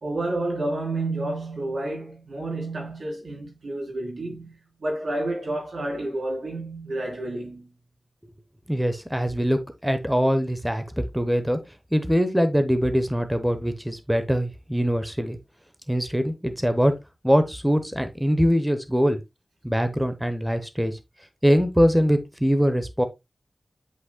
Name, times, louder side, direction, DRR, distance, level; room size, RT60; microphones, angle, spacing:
voice 1, 0.0-7.7, right 2 dB, 90° right, 3.6 m, -30 dB
voice 2, 8.7-11.6 11.9-15.4 15.9-16.9 17.2-19.2 19.6-21.0 21.4-23.0, equal, 5° right, 0.9 m, -23 dB
8.5 x 5.4 x 2.2 m
wide cardioid pair, 80°, 0 cm